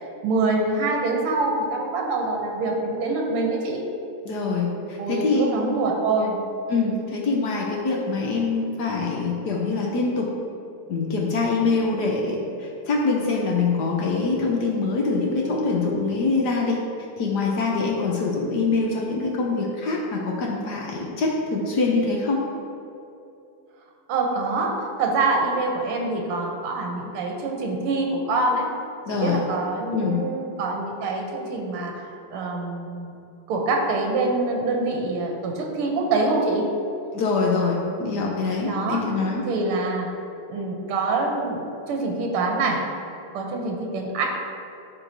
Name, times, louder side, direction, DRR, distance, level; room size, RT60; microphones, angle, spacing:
voice 1, 0.2-3.8 5.0-6.4 24.1-28.7 29.1-33.1 33.5-36.7 38.6-39.1 39.5-40.1 40.5-42.9 43.3-44.3, right 3 dB, 85° right, 1 dB, 1.7 m, -25 dB
voice 2, 4.2-5.5 6.7-10.3 10.9-16.8 17.2-22.4 29.1-29.4 29.9-30.2 37.1-39.4, left 3 dB, 65° left, -1 dB, 1.0 m, -24 dB
11.5 x 4.6 x 2.7 m, 2.8 s
omnidirectional pair, 2.4 m